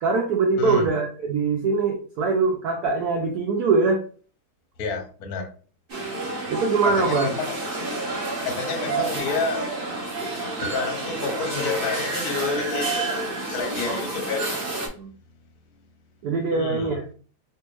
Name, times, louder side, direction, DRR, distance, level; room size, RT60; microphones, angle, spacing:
voice 1, 0.0-4.0 6.5-7.3 13.9-14.2 15.0-15.1 16.2-17.0, right 4 dB, 75° right, 1 dB, 0.9 m, -23 dB
voice 2, 0.6-0.9 4.8-5.5 6.8-7.6 8.4-9.7 10.6-14.4 16.5-16.9, left 4 dB, 60° left, 3 dB, 1.0 m, -29 dB
sound 1, 5.9-14.9, right 2 dB, 40° right, 0.7 m, -29 dB
3.4 x 2.6 x 3.0 m, 0.40 s
omnidirectional pair, 2.4 m